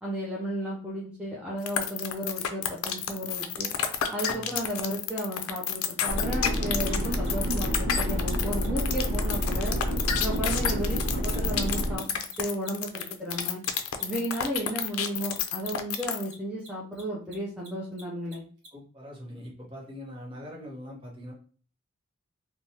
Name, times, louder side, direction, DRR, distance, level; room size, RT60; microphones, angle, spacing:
voice 1, 0.0-3.7 4.1-9.8 10.2-11.0 11.2-13.6 14.0-18.4, equal, 5° right, -5 dB, 0.4 m, -34 dB
sound 1, 1.7-16.3, left 9 dB, 90° left, 0.4 m, -29 dB
Mechanisms, 6.1-6.2 6.5-6.6 6.8-6.9 7.2-7.3 7.5-7.6 7.9-8.3 8.6-11.3 11.6-18.7, right 1 dB, 55° right, 1.0 m, -51 dB
sound 2, 6.1-12.0, equal, 85° right, 1.3 m, -28 dB
voice 2, 18.7-21.3, equal, 25° right, -2 dB, 0.8 m, -42 dB
3.1 x 2.2 x 2.7 m, 0.42 s
head